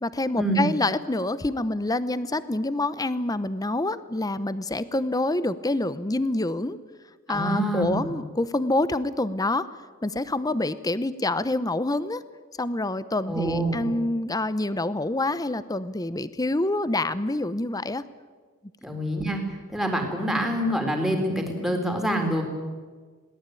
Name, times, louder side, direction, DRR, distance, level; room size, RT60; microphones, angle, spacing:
voice 1, 0.0-6.8 7.3-9.7 10.0-12.2 12.6-18.1, left 2 dB, 15° left, 15 dB, 0.8 m, -27 dB
voice 2, 7.3-8.1 13.3-13.9 18.8-19.4 19.7-22.4, right 1 dB, ahead, 2 dB, 3.7 m, -26 dB
22.0 x 18.0 x 9.1 m, 1.5 s
head